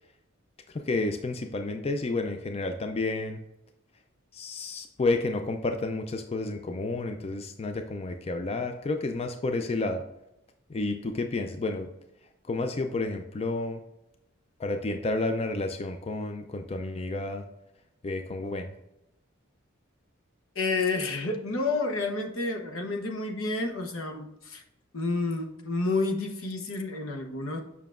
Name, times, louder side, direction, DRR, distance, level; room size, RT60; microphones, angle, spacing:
voice 1, 0.7-3.4 4.3-10.0 10.7-11.9 12.4-13.8 14.6-17.4 18.0-18.7, left 2 dB, 30° left, 6 dB, 0.4 m, -30 dB
voice 2, 20.5-24.6 24.9-27.6, left 3 dB, 75° left, 4 dB, 0.9 m, -30 dB
7.2 x 5.6 x 2.4 m, 0.87 s
head